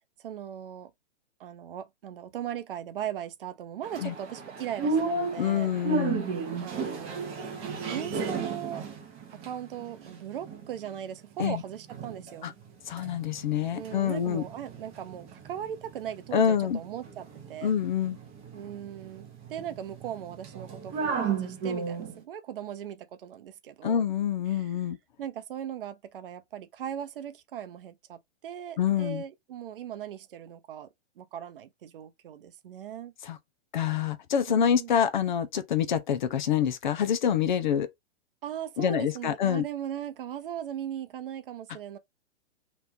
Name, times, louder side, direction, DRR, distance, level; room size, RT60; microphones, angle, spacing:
voice 1, 0.2-0.9 1.4-5.7 6.6-7.4 7.9-8.9 9.3-12.5 13.7-17.7 18.5-24.0 24.5-24.7 25.2-30.9 31.2-33.1 34.5-34.9 38.4-42.0, right 10 dB, 50° right, 0.7 m, -39 dB
sound 1, 3.8-11.0 11.4-12.4 12.6-22.2, right 4 dB, 15° right, 0.8 m, -34 dB
voice 2, 5.4-6.3 11.4-11.6 12.4-12.5 12.9-14.4 16.3-16.8 17.6-18.2 23.8-25.0 28.8-29.2 33.2-33.4 33.7-37.9 38.8-39.6, left 9 dB, 45° left, 0.5 m, -26 dB
3.0 x 2.5 x 3.5 m
hypercardioid pair, 150°, 35 cm